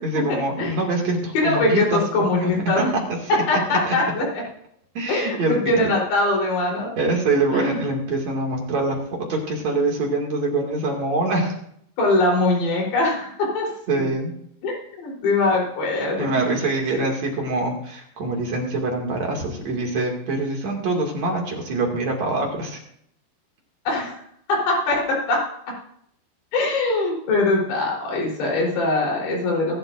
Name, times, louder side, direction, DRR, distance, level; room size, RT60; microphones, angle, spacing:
voice 1, 0.0-2.8 3.9-4.0 4.9-5.8 7.0-11.6 13.9-14.3 16.2-22.8, right 2 dB, 50° right, 0 dB, 2.9 m, -24 dB
voice 2, 1.3-2.9 3.5-4.4 5.1-6.9 7.5-7.8 12.0-13.7 14.0-14.1 14.6-16.6 16.9-17.1 23.9-24.2 24.5-25.4 25.7-25.8 26.5-29.8, left 2 dB, 80° left, -2 dB, 5.7 m, -22 dB
21.5 x 11.5 x 2.5 m, 0.69 s
omnidirectional pair, 4.8 m